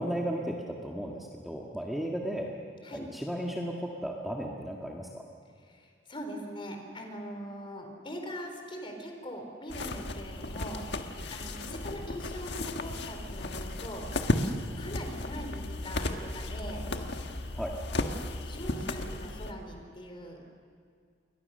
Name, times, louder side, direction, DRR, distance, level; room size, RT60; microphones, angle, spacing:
voice 1, 0.0-2.5 2.9-5.3 17.5-17.8, equal, ahead, -2 dB, 1.6 m, -35 dB
voice 2, 5.6-14.2 14.8-16.8 18.4-20.5, equal, 30° left, 4 dB, 4.0 m, -42 dB
sound 1, 9.7-19.5, left 2 dB, 65° left, 1.5 m, -34 dB
29.0 x 23.5 x 6.6 m, 2.2 s
head